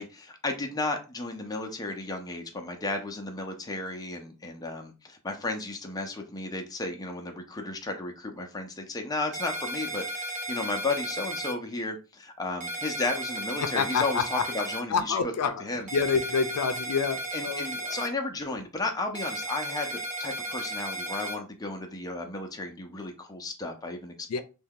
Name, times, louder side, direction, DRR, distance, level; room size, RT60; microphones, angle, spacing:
voice 1, 0.0-15.9 17.3-24.4, left 2 dB, 15° left, 0.5 m, -34 dB
sound 1, 9.3-11.5 12.6-14.8 15.9-18.1 19.1-21.4, right 1 dB, 35° right, 0.8 m, -34 dB
voice 2, 13.6-14.5 14.9-15.6 15.9-18.1 24.3-24.4, left 5 dB, 90° left, 0.4 m, -28 dB
2.7 x 2.2 x 3.5 m
head